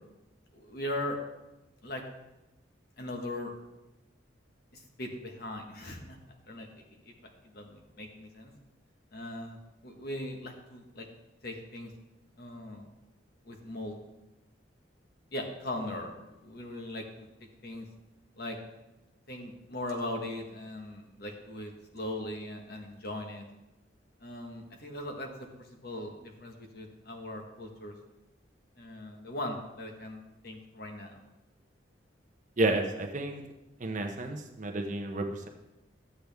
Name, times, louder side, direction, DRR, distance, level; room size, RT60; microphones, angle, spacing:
voice 1, 0.5-1.2 1.8-2.0 3.0-3.5 4.7-6.2 6.5-7.0 7.4-8.5 9.1-9.6 9.8-11.1 11.4-11.9 12.4-12.9 13.4-14.0 15.3-17.3 17.6-17.8 18.4-18.6 19.3-23.4 24.2-25.3 25.6-27.9 28.8-31.2, left 1 dB, 55° left, 3 dB, 1.4 m, -39 dB
voice 2, 32.6-33.4 33.8-35.5, right 2 dB, 40° right, 4 dB, 0.8 m, -31 dB
12.0 x 7.9 x 3.5 m, 0.99 s
head